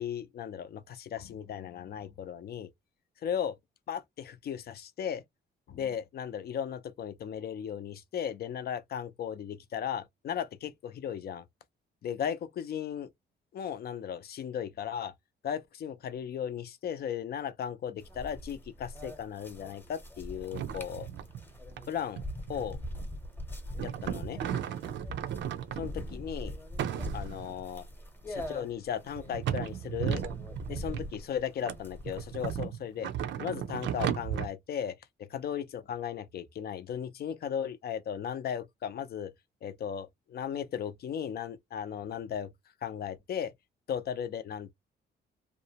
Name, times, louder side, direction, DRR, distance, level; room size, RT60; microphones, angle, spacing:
voice 1, 0.0-2.7 3.2-3.5 3.9-5.2 5.7-11.4 12.0-13.1 13.5-15.1 15.4-21.1 21.9-22.2 22.5-22.8 23.8-24.4 25.8-26.5 27.1-27.8 28.3-30.2 30.7-33.1 33.4-39.3 39.6-42.5 42.8-43.5 43.9-44.7, left 8 dB, 50° left, 0.4 m, -36 dB
sound 1, 18.0-32.5, left 1 dB, 10° left, 0.8 m, -43 dB
sound 2, 20.5-21.5 21.7-21.9 22.2-23.2 23.8-26.2 26.8-27.6 28.3-28.4 29.2-31.2 31.7-34.5, right 9 dB, 70° right, 0.5 m, -35 dB
2.5 x 2.0 x 2.8 m
cardioid pair, 90°, 20 cm